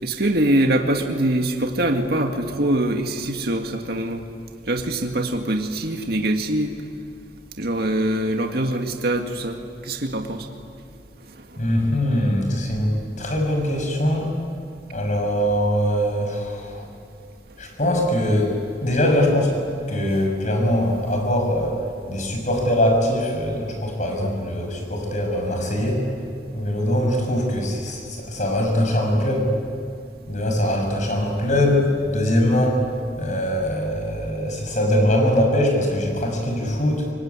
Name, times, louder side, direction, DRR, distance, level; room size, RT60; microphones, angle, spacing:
voice 1, 0.0-4.2 4.7-6.7 7.6-10.5 13.1-13.3, right 1 dB, 60° right, 4 dB, 2.0 m, -23 dB
voice 2, 11.6-12.9 13.2-14.3 14.9-16.9 17.6-18.5 18.8-19.6 19.9-21.8 22.1-26.1 26.5-29.5 30.3-32.8 33.2-37.1, left 1 dB, 45° left, 2 dB, 6.5 m, -22 dB
26.0 x 23.0 x 9.7 m, 2.3 s
head